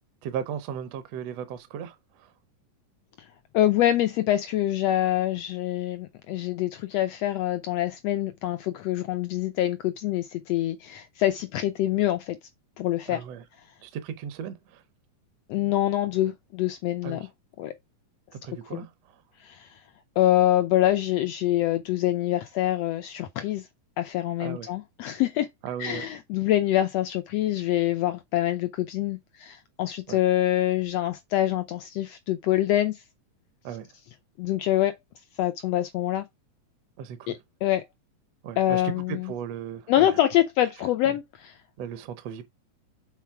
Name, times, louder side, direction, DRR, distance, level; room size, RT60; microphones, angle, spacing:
voice 1, 0.2-2.3 13.1-13.4 13.8-14.8 17.0-17.3 18.3-19.2 24.4-24.7 25.6-26.0 30.1-30.2 33.6-33.9 37.0-37.4 38.4-38.8 39.1-40.2 41.0-41.1 41.8-42.5, right 8 dB, 70° right, 1.6 m, -36 dB
voice 2, 3.5-12.4 12.8-13.2 15.5-17.3 17.6-17.7 18.7-18.8 19.4-19.7 20.2-23.6 24.0-25.5 25.8-32.9 34.4-34.9 35.4-36.2 37.3-37.4 37.6-37.8 38.6-39.3 39.9-41.5, left 13 dB, 85° left, 1.4 m, -25 dB
7.2 x 4.1 x 4.6 m
omnidirectional pair, 3.8 m